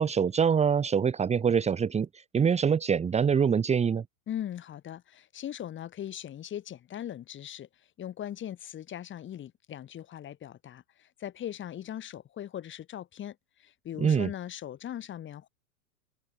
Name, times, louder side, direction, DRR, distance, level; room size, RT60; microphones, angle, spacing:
voice 1, 0.0-4.0 14.0-14.3, right 7 dB, 15° right, 2.2 m, -25 dB
voice 2, 4.3-15.5, left 11 dB, 25° left, 7.7 m, -40 dB
open air
hypercardioid pair, 130°, 47 cm